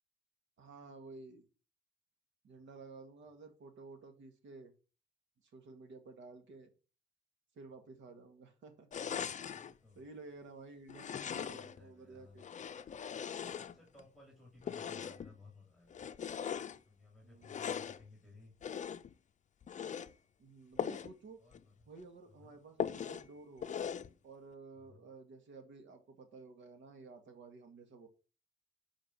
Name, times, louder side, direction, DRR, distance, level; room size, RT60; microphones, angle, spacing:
voice 1, 0.6-1.4 2.4-4.7 5.4-6.7 7.6-8.9 9.3-12.5 17.2-17.6 20.4-21.4 21.9-23.8 24.2-28.1, right 3 dB, 70° right, 6 dB, 1.9 m, -53 dB
sound 1, 8.9-9.7 10.9-11.8 12.4-14.0 14.6-15.3 15.9-16.8 17.4-18.0 18.6-19.1 19.6-20.1 20.8-21.1 21.5-21.6 22.0-22.1 22.8-23.3 23.6-24.1, left 8 dB, 40° left, 0.6 m, -40 dB
voice 2, 9.5-10.0 11.2-12.4 13.5-15.9 16.8-18.5 21.4-21.9 22.2-22.5 24.7-25.1, left 3 dB, ahead, -1 dB, 2.9 m, -59 dB
7.0 x 5.0 x 6.2 m, 0.34 s
cardioid pair, 90°, 20 cm